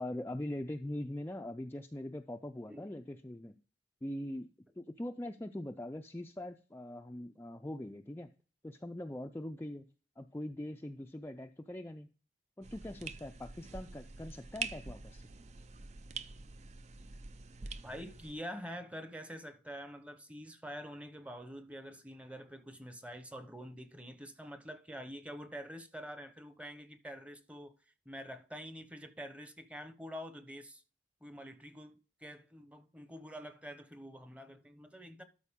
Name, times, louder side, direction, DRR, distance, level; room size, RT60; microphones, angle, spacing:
voice 1, 0.0-3.6 4.0-4.5 4.8-8.3 8.6-9.9 10.2-12.1 12.6-15.2, left 1 dB, 15° left, 0.4 m, -42 dB
sound 1, 12.6-18.3, right 4 dB, 40° right, 0.5 m, -45 dB
voice 2, 17.8-27.7 28.0-30.8 31.2-35.2, equal, 5° right, 0.9 m, -46 dB
12.5 x 4.8 x 3.6 m
head